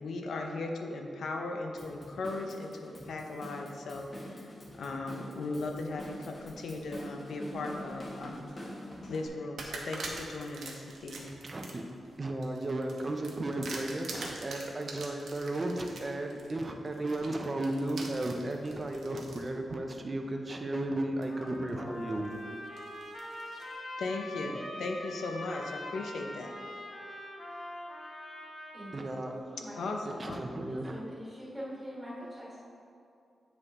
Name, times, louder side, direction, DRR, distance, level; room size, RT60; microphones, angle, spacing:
voice 1, 0.0-4.5 4.8-8.5 9.0-11.3 24.0-26.5 29.8-30.4, left 2 dB, 75° left, 3 dB, 0.7 m, -37 dB
Drum kit / Drum, 1.8-9.3, left 1 dB, 25° left, 0.9 m, -46 dB
sound 1, 5.9-7.0 7.5-8.4 8.9-9.0 9.6-19.5 20.1-20.2 21.2-21.7 22.1-23.8, right 3 dB, 70° right, 0.9 m, -45 dB
voice 2, 11.4-11.8 12.2-22.3 28.9-29.6 30.1-31.0, right 1 dB, 25° right, 3 dB, 0.5 m, -34 dB
Trumpet, 21.2-29.1, left 1 dB, 45° left, 1.0 m, -43 dB
voice 3, 28.7-32.6, equal, ahead, -8 dB, 1.5 m, -44 dB
8.1 x 5.2 x 3.6 m, 2.5 s
wide cardioid pair, 170°, 0 cm